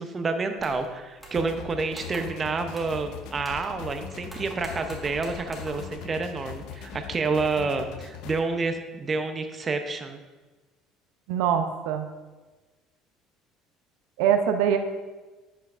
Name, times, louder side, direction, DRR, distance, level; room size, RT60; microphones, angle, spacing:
voice 1, 0.0-10.2, right 4 dB, 30° right, 7 dB, 0.7 m, -29 dB
sound 1, 0.6-0.9 1.2-1.6 1.9-2.4 2.7-3.1 3.4-4.0 4.3-5.9, equal, 5° right, 1.6 m, -45 dB
sound 2, 1.3-8.4, left 8 dB, 75° left, 0.6 m, -41 dB
voice 2, 11.3-12.1 14.2-14.8, right 8 dB, 85° right, 7 dB, 0.6 m, -23 dB
10.5 x 5.6 x 2.5 m, 1.2 s
cardioid pair, 110°, 0 cm